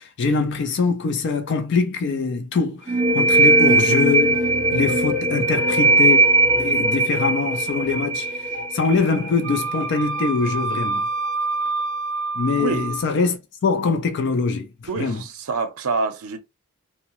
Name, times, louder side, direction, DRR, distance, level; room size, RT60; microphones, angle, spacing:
voice 1, 0.0-4.4 4.7-6.2 6.6-11.1 12.4-14.7 15.0-15.2, left 4 dB, 55° left, 0.4 m, -23 dB
sound 1, 2.9-10.3, right 2 dB, 20° right, 0.7 m, -19 dB
Wind instrument woodwind instrument, 9.4-13.1, right 3 dB, 25° left, 1.0 m, -27 dB
voice 2, 12.6-12.9 14.9-16.4, right 4 dB, 90° right, 0.6 m, -26 dB
2.8 x 2.0 x 2.9 m
head